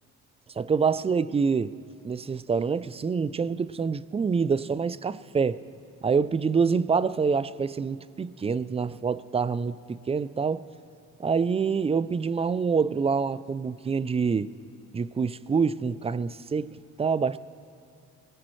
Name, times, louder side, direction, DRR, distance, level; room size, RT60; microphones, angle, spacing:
voice 1, 0.6-1.7 2.0-5.6 6.0-10.7 11.2-14.5 14.9-17.4, right 5 dB, 20° right, 0.4 m, -26 dB
21.0 x 18.0 x 3.2 m
cardioid pair, 90°, 30 cm